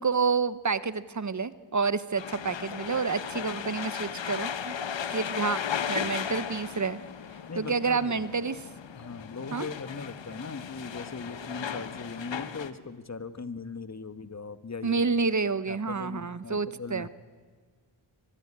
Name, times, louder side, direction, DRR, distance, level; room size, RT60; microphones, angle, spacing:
voice 1, 0.0-4.8 5.1-5.6 5.9-7.0 7.6-8.6 9.5-9.7 14.8-17.1, right 5 dB, 35° right, 15 dB, 0.9 m, -29 dB
sound 1, 2.2-12.7, left 8 dB, 65° left, 1.2 m, -36 dB
voice 2, 7.5-8.2 8.9-15.0 15.7-17.1, left 4 dB, 35° left, 12 dB, 1.4 m, -39 dB
23.5 x 21.0 x 8.7 m, 1.5 s
cardioid pair, 60°, 48 cm